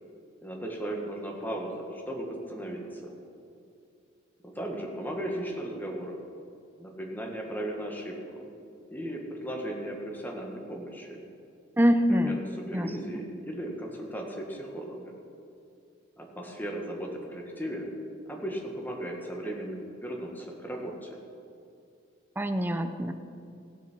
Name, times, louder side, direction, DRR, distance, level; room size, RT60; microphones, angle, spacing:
voice 1, 0.4-3.1 4.4-6.2 6.8-8.5 8.9-11.2 12.1-15.2 16.2-17.9 18.3-21.2, right 1 dB, 10° left, 0 dB, 1.7 m, -36 dB
voice 2, 11.8-12.4 12.7-12.9 22.4-23.1, equal, 10° right, 8 dB, 0.6 m, -24 dB
17.5 x 7.3 x 6.1 m, 2.5 s
head